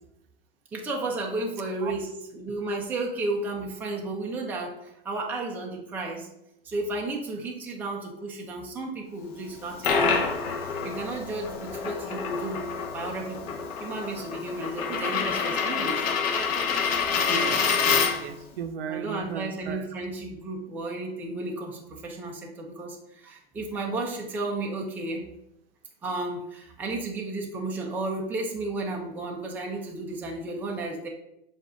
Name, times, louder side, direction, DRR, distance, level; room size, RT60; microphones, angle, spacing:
voice 1, 0.7-6.3 6.6-10.3 10.8-12.6 12.9-13.5 13.8-16.0 18.9-25.2 26.0-31.1, right 2 dB, 5° right, 0.6 m, -33 dB
Coin (dropping), 9.5-18.4, left 5 dB, 40° left, 0.9 m, -27 dB
voice 2, 17.3-19.9, right 7 dB, 65° right, 0.8 m, -36 dB
7.4 x 2.6 x 5.5 m
supercardioid pair, 155°, 31 cm